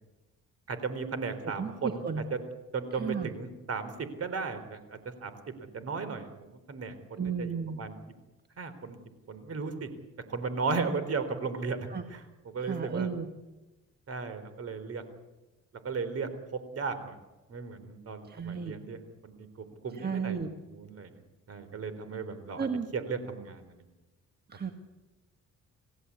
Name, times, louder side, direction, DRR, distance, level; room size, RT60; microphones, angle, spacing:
voice 1, 0.7-2.4 2.7-5.4 5.7-7.9 8.6-9.0 9.3-9.9 10.3-13.1 14.1-15.0 15.8-16.3 16.7-17.2 17.5-20.4 20.7-21.1 21.5-22.7 22.9-23.7, right 4 dB, 50° right, 11 dB, 3.7 m, -35 dB
voice 2, 1.6-2.2 3.0-3.3 7.2-7.8 11.9-12.0 12.6-13.3 18.3-18.8 20.0-20.5 22.6-22.9 24.5-24.7, right 6 dB, 30° right, 6 dB, 1.8 m, -33 dB
27.5 x 16.0 x 8.4 m, 1.1 s
cardioid pair, 90°, 30 cm